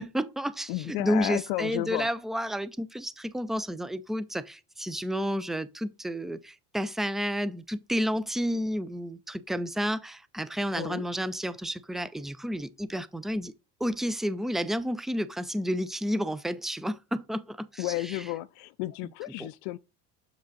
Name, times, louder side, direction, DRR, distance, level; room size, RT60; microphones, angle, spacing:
voice 1, 0.0-13.5 13.8-18.2 19.0-19.1 19.4-19.5, equal, ahead, 0.4 m, -31 dB
voice 2, 0.7-2.1 10.7-11.0 17.8-19.8, left 18 dB, 70° left, 0.5 m, -32 dB
7.1 x 5.1 x 3.9 m
supercardioid pair, 110°, 36 cm